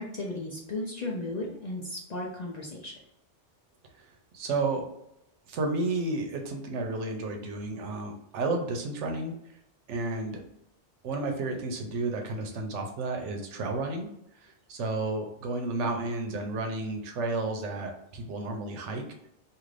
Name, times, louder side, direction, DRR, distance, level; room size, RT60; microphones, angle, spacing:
voice 1, 0.0-2.9, left 2 dB, 50° left, -2 dB, 0.5 m, -35 dB
voice 2, 4.3-4.8 5.5-9.3 9.9-10.4 11.0-14.1 14.4-19.3, right 3 dB, 80° right, 3 dB, 1.0 m, -32 dB
2.6 x 2.5 x 3.2 m, 0.80 s
omnidirectional pair, 1.2 m